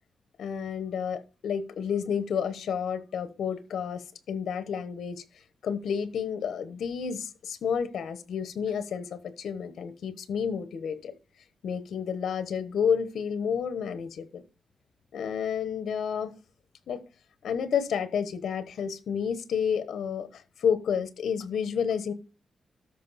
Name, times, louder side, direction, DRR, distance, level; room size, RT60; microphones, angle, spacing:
voice 1, 0.4-5.2 5.6-11.1 11.6-14.4 15.1-16.3 16.9-17.0 17.4-22.1, left 7 dB, 75° left, 1.1 m, -30 dB
13.0 x 5.2 x 4.1 m
wide cardioid pair, 150°, 0 cm